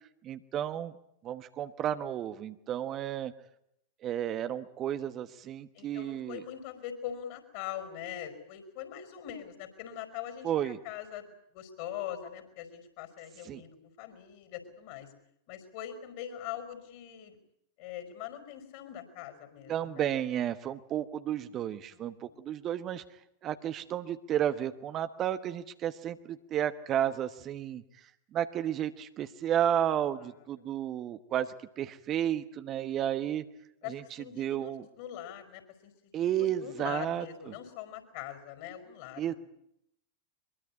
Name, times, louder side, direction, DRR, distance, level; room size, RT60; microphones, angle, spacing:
voice 1, 0.2-1.0 1.2-3.3 4.0-6.4 10.4-10.8 13.4-13.6 19.7-33.4 33.9-34.0 34.4-34.9 36.1-37.5 39.2-39.3, right 10 dB, 30° right, 11 dB, 1.2 m, -32 dB
voice 2, 5.7-15.1 15.5-17.4 17.8-20.1 21.9-22.3 33.8-36.1 36.4-39.4, left 10 dB, 45° left, 9 dB, 5.2 m, -42 dB
23.5 x 22.5 x 8.5 m, 0.76 s
figure-of-eight pair, 90°, 0 cm